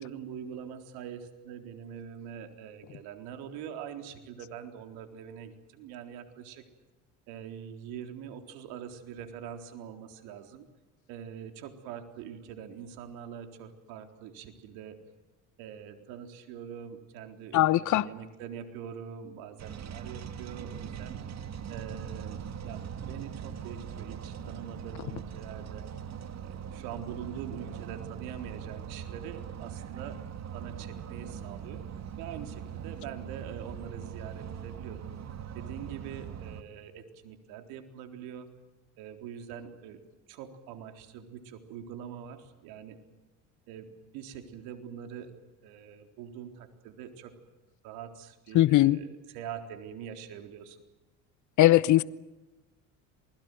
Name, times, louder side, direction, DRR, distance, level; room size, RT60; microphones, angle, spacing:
voice 1, 0.0-6.6 7.3-10.7 11.1-15.0 15.6-21.2 21.7-25.9 26.4-30.2 30.5-31.8 32.2-35.0 35.5-38.5 39.0-40.0 40.3-43.0 43.7-45.4 45.6-47.3 47.8-50.8, right 8 dB, 75° right, 4.0 m, -44 dB
voice 2, 17.5-18.1 48.5-49.0 51.6-52.0, left 15 dB, 50° left, 1.0 m, -20 dB
machine squeaks to stop, 19.6-36.6, right 8 dB, 45° right, 2.2 m, -41 dB
28.0 x 21.0 x 7.9 m
hypercardioid pair, 75°, 38 cm